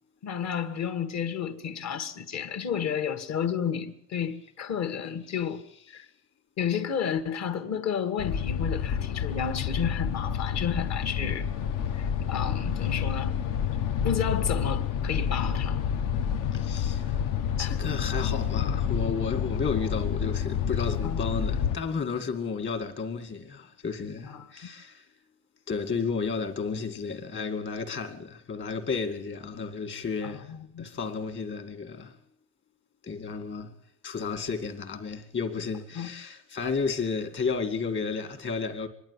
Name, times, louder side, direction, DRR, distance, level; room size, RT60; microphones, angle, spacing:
voice 1, 0.2-5.6 5.9-6.1 6.6-11.5 11.9-13.3 14.0-15.8 17.6-17.8 21.0-21.2 24.3-24.5 30.2-30.8 36.0-36.1, left 7 dB, 55° left, 1.8 m, -31 dB
sound 1, 8.2-21.8, left 8 dB, 80° left, 1.3 m, -29 dB
voice 2, 16.5-17.2 17.6-25.1 25.7-30.5 30.8-32.2 33.0-33.7 34.0-38.9, left 5 dB, 35° left, 2.1 m, -32 dB
25.5 x 11.5 x 9.8 m
cardioid pair, 170°, 31 cm